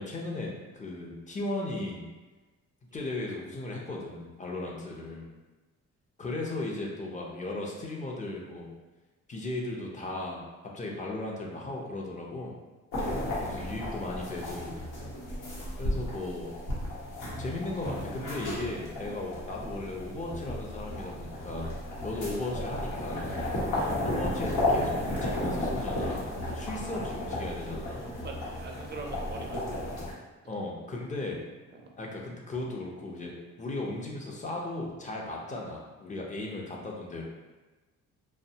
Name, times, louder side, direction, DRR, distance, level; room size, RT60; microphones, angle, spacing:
voice 1, 0.0-2.1 2.9-5.3 6.2-8.7 9.3-10.5 10.7-12.5 13.4-14.8 15.8-16.5 17.4-23.3 24.0-26.2 26.5-28.1 30.5-31.4 32.0-33.3 33.6-37.2, left 2 dB, 25° left, -2 dB, 0.5 m, -36 dB
sound 1, 12.9-30.1, left 1 dB, 85° left, 0.9 m, -33 dB
voice 2, 28.2-29.6 31.7-31.9, right 3 dB, 35° right, 1 dB, 0.5 m, -42 dB
2.7 x 2.1 x 2.7 m, 1.2 s
cardioid pair, 90°, 30 cm